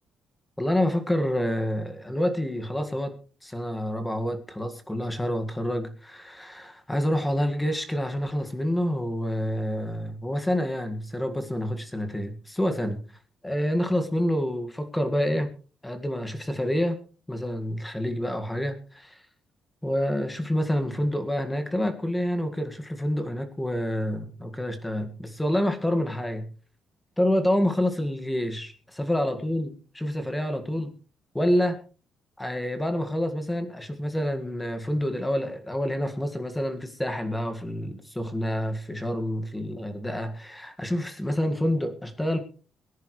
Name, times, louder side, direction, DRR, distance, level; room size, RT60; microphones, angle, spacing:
voice 1, 0.6-3.1 3.4-13.0 13.4-15.5 15.8-17.0 17.3-19.2 19.8-26.5 27.2-30.9 31.3-31.8 32.4-42.4, equal, 5° left, 7 dB, 1.8 m, -28 dB
22.5 x 10.5 x 3.2 m, 0.37 s
cardioid pair, 150°, 0 cm